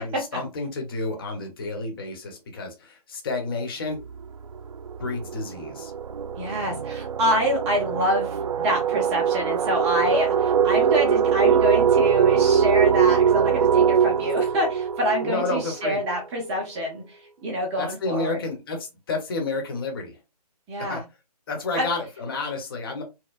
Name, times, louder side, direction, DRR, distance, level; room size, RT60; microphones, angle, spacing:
voice 1, 0.0-4.0 5.0-5.9 15.2-16.0 17.8-20.2 20.9-21.0 21.5-23.0, left 3 dB, 35° left, 2 dB, 1.0 m, -30 dB
sound 1, 4.0-4.2 4.6-16.1, right 7 dB, 65° right, 0.4 m, -22 dB
voice 2, 6.4-18.4 20.7-21.0 21.8-21.9, equal, 10° right, 0 dB, 0.6 m, -26 dB
4.6 x 2.0 x 2.4 m, 0.25 s
hypercardioid pair, 160°, 20 cm